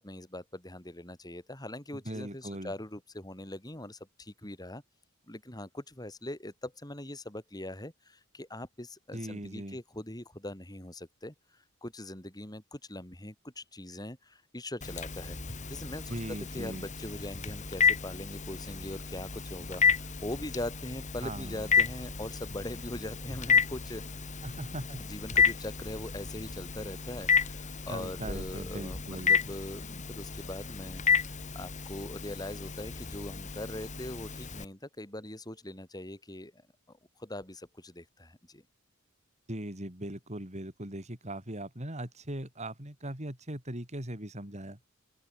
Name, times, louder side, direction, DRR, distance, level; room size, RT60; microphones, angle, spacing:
voice 1, 0.0-4.8 5.3-15.4 15.7-24.3 25.1-31.3 31.5-36.6 36.9-38.6, left 1 dB, 20° left, 3.8 m, -41 dB
voice 2, 2.0-2.7 9.1-9.8 16.1-16.9 21.2-21.7 24.4-25.0 27.9-29.3 39.5-44.8, right 1 dB, 35° right, 4.4 m, -39 dB
Telephone, 14.8-34.6, left 6 dB, 35° left, 1.7 m, -31 dB
open air
head